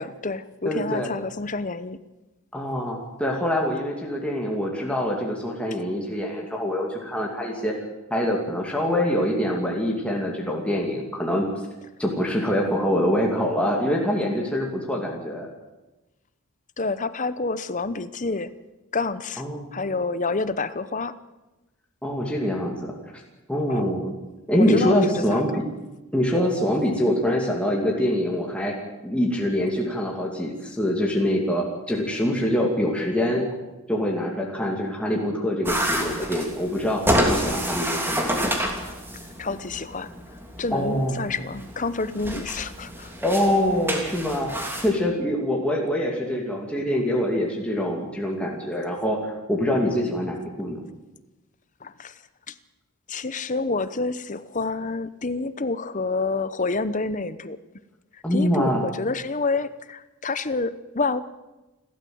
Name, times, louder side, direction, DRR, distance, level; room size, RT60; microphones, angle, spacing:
voice 1, 0.0-2.0 16.8-18.5 18.9-19.4 19.7-21.1 23.7-23.8 24.6-25.5 39.4-40.1 40.6-43.1 51.8-52.2 52.5-52.6 53.1-57.6 58.1-61.2, left 3 dB, 35° left, 14 dB, 0.8 m, -28 dB
voice 2, 0.6-1.1 2.5-7.7 8.1-11.4 12.0-15.5 19.4-19.7 22.0-22.9 23.5-24.1 24.5-25.6 26.1-33.5 33.9-38.3 40.7-41.1 43.2-44.5 44.8-50.8 58.2-58.8, equal, 5° left, -1 dB, 2.5 m, -24 dB
sound 1, 35.6-44.9, equal, 10° right, 2.8 m, -28 dB
29.0 x 13.0 x 7.8 m, 1.1 s
head